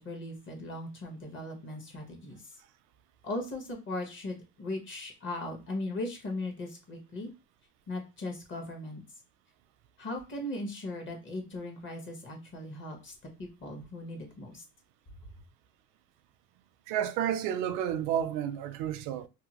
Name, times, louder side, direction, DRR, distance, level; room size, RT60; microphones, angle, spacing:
voice 1, 0.0-2.4 3.2-7.3 7.9-9.0 10.0-13.1 13.4-14.6, left 2 dB, 35° left, 1.0 m, -38 dB
voice 2, 16.9-19.3, right 10 dB, 70° right, 0.5 m, -31 dB
2.7 x 2.3 x 2.9 m
cardioid pair, 120°, 33 cm